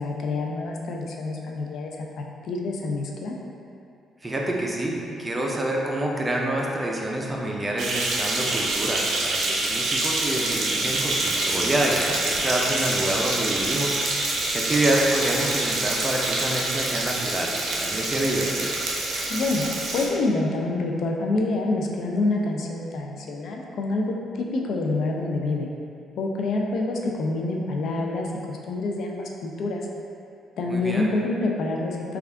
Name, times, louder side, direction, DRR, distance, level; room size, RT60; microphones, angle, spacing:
voice 1, 0.0-3.3 19.3-24.0 24.4-25.7 26.2-29.8 30.6-32.2, left 2 dB, 70° left, 0 dB, 0.4 m, -27 dB
voice 2, 4.2-14.3 14.5-18.7 30.7-31.1, right 1 dB, 20° right, -2 dB, 0.5 m, -27 dB
sound 1, 7.8-20.1, right 2 dB, 70° right, 0.6 m, -26 dB
3.3 x 2.3 x 3.5 m, 2.5 s
cardioid pair, 90°, 0 cm